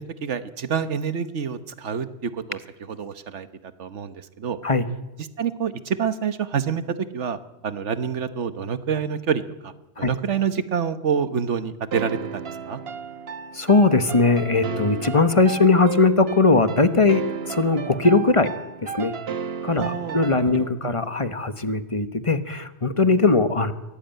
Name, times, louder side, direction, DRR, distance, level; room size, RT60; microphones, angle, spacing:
voice 1, 0.0-2.6 2.9-4.6 5.4-9.7 10.0-12.8 19.8-20.2, right 7 dB, 80° right, 12 dB, 1.4 m, -27 dB
Piano Melody, 11.9-20.8, right 6 dB, 60° right, 1.2 m, -34 dB
voice 2, 13.5-18.5 18.8-19.1 19.6-23.7, left 3 dB, 30° left, 11 dB, 1.2 m, -20 dB
24.0 x 17.5 x 9.1 m, 1.0 s
omnidirectional pair, 1.2 m